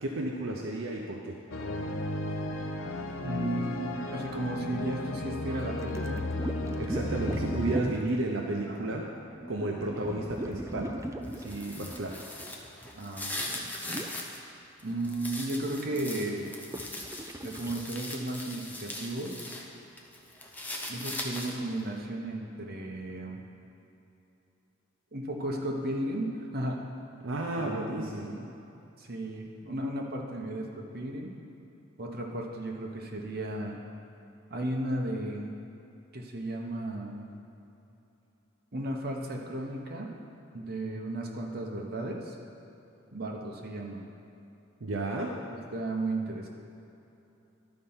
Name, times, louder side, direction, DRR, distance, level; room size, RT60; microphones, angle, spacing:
voice 1, 0.0-1.4 6.8-9.1 9.5-10.9 11.3-12.2 27.2-28.4 44.8-45.3, right 2 dB, 75° right, 0 dB, 0.7 m, -33 dB
sound 1, 1.5-7.8, left 2 dB, 75° left, 0.6 m, -34 dB
voice 2, 3.2-6.2 8.7-8.9 12.9-14.0 14.8-16.5 17.4-19.5 20.9-23.4 25.1-26.3 26.5-26.8 27.6-28.5 29.0-31.3 32.0-33.8 34.5-35.5 36.1-37.2 38.7-40.1 40.5-42.4 43.1-44.0 45.3-46.5, right 1 dB, 50° right, 0 dB, 1.1 m, -35 dB
sound 2, 5.8-8.2 9.3-12.9 13.4-13.5 13.9-14.2 15.8-16.2 16.7-17.7, right 1 dB, 15° right, 0.4 m, -38 dB
sound 3, 11.2-14.4 14.8-19.7 20.0-21.7, left 1 dB, 10° left, 0.8 m, -40 dB
12.0 x 4.4 x 5.6 m, 2.9 s
head